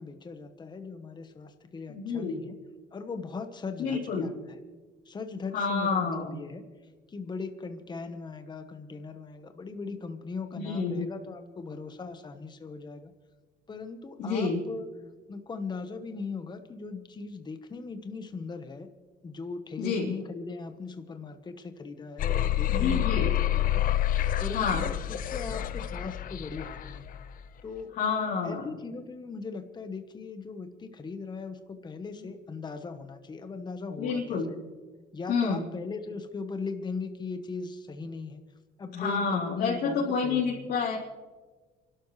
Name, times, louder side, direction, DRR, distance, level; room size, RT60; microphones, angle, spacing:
voice 1, 0.0-2.6 2.9-4.6 5.1-6.6 7.1-13.1 13.7-14.9 15.3-18.9 19.2-23.8 24.4-27.1 27.6-28.0 28.4-34.6 35.1-38.4 38.8-40.7, left 4 dB, 25° left, 8 dB, 1.1 m, -39 dB
voice 2, 1.9-2.4 3.8-4.3 5.5-6.3 10.5-11.1 14.2-14.6 19.8-20.1 22.7-23.3 24.5-24.9 28.0-28.7 34.0-34.5 35.3-35.6 38.9-41.0, left 5 dB, 75° left, -7 dB, 3.9 m, -29 dB
sound 1, 22.2-27.3, left 12 dB, 55° left, 0.6 m, -28 dB
28.5 x 12.5 x 3.2 m, 1.4 s
cardioid pair, 110°, 17 cm